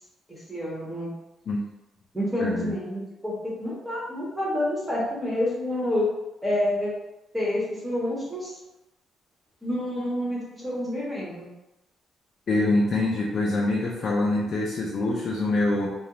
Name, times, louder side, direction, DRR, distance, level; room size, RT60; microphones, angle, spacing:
voice 1, 0.3-1.1 2.1-3.3 3.6-6.1 6.4-6.9 7.3-8.5 9.6-11.5, left 1 dB, 10° right, -6 dB, 0.9 m, -28 dB
voice 2, 2.4-2.8 12.5-15.9, left 2 dB, 55° left, -4 dB, 0.4 m, -25 dB
2.3 x 2.0 x 2.9 m, 0.96 s
cardioid pair, 90°, 0 cm